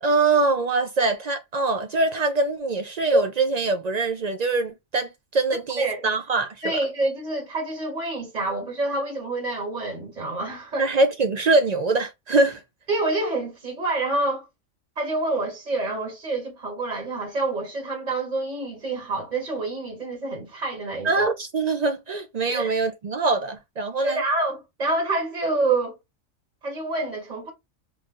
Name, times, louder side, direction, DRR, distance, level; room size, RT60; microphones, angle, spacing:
voice 1, 0.0-6.8 10.8-12.6 21.0-24.2, right 3 dB, 70° right, 0.4 m, -23 dB
voice 2, 6.6-11.0 12.9-14.5 15.0-21.3 22.5-22.7 24.0-26.0 26.6-27.5, right 2 dB, 35° right, 1.1 m, -27 dB
3.1 x 2.5 x 3.7 m
omnidirectional pair, 1.3 m